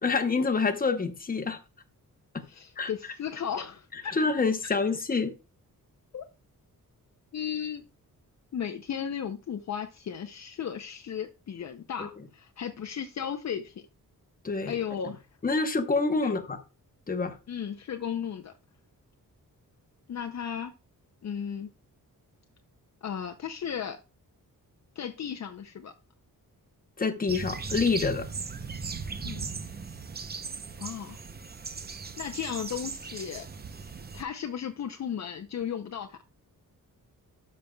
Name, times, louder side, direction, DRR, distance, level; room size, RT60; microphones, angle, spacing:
voice 1, 0.0-1.6 2.8-2.9 4.1-5.3 12.0-12.1 14.4-14.7 15.4-16.6 17.1-17.3 27.0-28.3, left 4 dB, 25° left, 0.9 m, -27 dB
voice 2, 2.5-4.2 4.6-4.7 6.1-6.2 7.3-7.8 8.5-13.8 14.7-15.3 16.2-16.3 17.5-18.5 20.1-20.7 21.2-21.7 23.0-24.0 25.0-25.9 29.2-29.5 30.8-31.2 32.2-33.5 34.1-36.2, left 8 dB, 50° left, 0.6 m, -35 dB
sound 1, 27.3-34.2, right 5 dB, 30° right, 0.6 m, -38 dB
12.0 x 5.2 x 2.2 m
wide cardioid pair, 155°, 35 cm